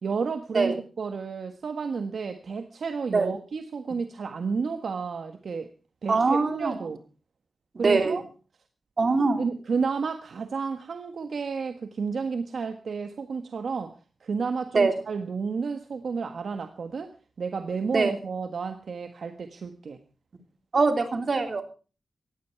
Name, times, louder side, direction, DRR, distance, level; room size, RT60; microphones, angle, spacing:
voice 1, 0.0-5.7 6.0-7.0 7.8-8.2 9.4-13.9 14.2-17.1 17.4-20.0, right 5 dB, 70° right, 8 dB, 1.5 m, -31 dB
voice 2, 6.1-6.8 7.8-8.2 9.0-9.4 14.7-14.9 17.9-18.1 20.7-21.6, right 4 dB, 50° right, 7 dB, 3.5 m, -23 dB
18.5 x 14.5 x 4.7 m, 0.36 s
wide cardioid pair, 90°, 0 cm